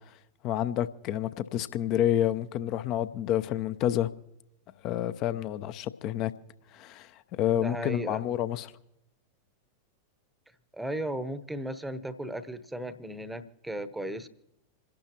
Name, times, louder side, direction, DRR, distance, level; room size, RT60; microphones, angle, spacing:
voice 1, 0.4-4.1 4.8-6.3 6.7-8.7, left 11 dB, 40° left, 13 dB, 0.7 m, -29 dB
voice 2, 7.6-8.3 10.7-14.3, right 1 dB, 5° right, 13 dB, 0.9 m, -35 dB
27.5 x 11.5 x 2.9 m, 0.87 s
figure-of-eight pair, 90°, 0 cm